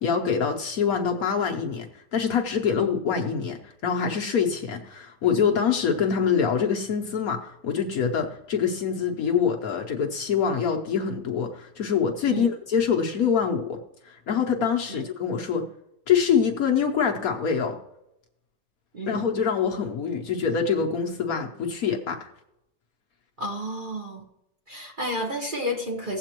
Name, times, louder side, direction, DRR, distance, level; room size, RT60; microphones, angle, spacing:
voice 1, 0.0-13.8 14.0-15.6 16.1-17.8 19.1-22.3, left 6 dB, 60° left, 2 dB, 1.2 m, -25 dB
voice 2, 23.4-24.2 24.7-26.2, equal, 35° right, 0 dB, 1.0 m, -31 dB
17.0 x 7.7 x 3.0 m, 0.85 s
omnidirectional pair, 2.0 m